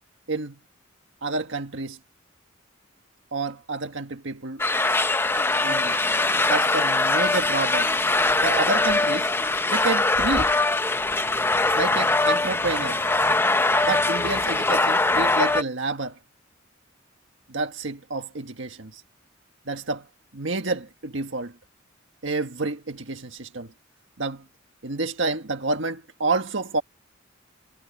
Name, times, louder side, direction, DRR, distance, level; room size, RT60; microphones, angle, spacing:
voice 1, 0.3-0.6 1.2-2.0 3.3-4.7 5.6-6.0 6.4-7.9 8.4-9.3 9.7-10.6 11.7-13.0 13.8-16.2 17.5-19.0 19.7-20.1 20.3-21.5 22.2-23.7 24.2-24.4 24.8-26.8, right 3 dB, 70° right, 1.6 m, -29 dB
sound 1, 4.6-15.6, left 2 dB, 10° left, 0.6 m, -22 dB
head